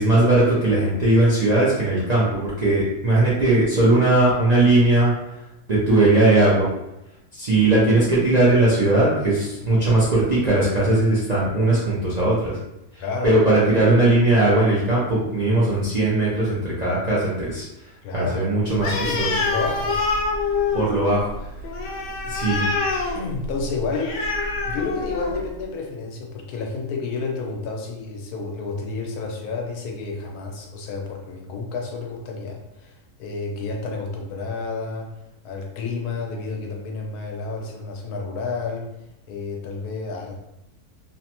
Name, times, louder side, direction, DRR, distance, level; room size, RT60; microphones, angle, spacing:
voice 1, 0.0-5.1 5.7-6.7 7.3-12.6 12.9-17.7 18.1-19.3 20.7-21.5 22.2-22.7, right 2 dB, 75° right, -8 dB, 0.3 m, -19 dB
voice 2, 13.0-13.3 18.0-20.0 23.1-24.4 24.7-35.1 35.4-38.9 39.3-40.3, left 4 dB, 85° left, 0 dB, 1.1 m, -30 dB
Animal, 18.8-25.5, left 3 dB, 70° left, 0.8 m, -26 dB
3.1 x 2.0 x 2.8 m, 0.89 s
omnidirectional pair, 1.6 m